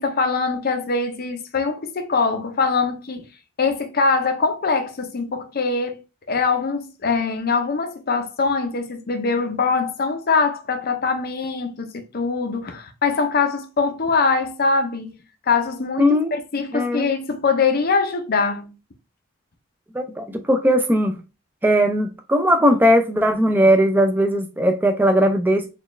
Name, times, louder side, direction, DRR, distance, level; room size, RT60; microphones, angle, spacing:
voice 1, 0.0-3.3 3.6-6.0 6.3-15.1 15.5-18.7, left 4 dB, 45° left, 0.5 m, -23 dB
voice 2, 16.0-16.3 16.7-17.1 19.9-21.1 21.6-25.6, equal, 10° right, 0.4 m, -18 dB
4.1 x 2.4 x 3.1 m
head